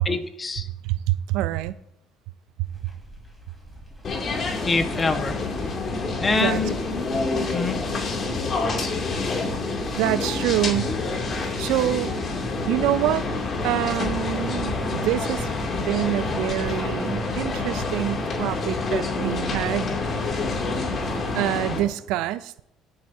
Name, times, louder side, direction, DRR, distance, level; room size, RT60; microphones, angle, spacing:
voice 1, 0.0-0.7 4.6-5.4 6.2-6.7 7.5-7.8, left 3 dB, 25° left, 7 dB, 1.2 m, -24 dB
voice 2, 0.8-1.8 6.3-6.6 10.0-10.9 11.6-12.2 12.7-13.3 13.6-20.0 21.1-22.5, right 14 dB, 80° right, 16 dB, 0.4 m, -26 dB
sound 1, 2.6-21.3, equal, ahead, 4.0 m, -42 dB
sound 2, 4.0-21.8, left 3 dB, 40° left, 2.5 m, -28 dB
sound 3, 5.6-21.9, equal, 30° right, 2.8 m, -39 dB
19.0 x 7.9 x 2.7 m, 0.81 s
cardioid pair, 105°, 0 cm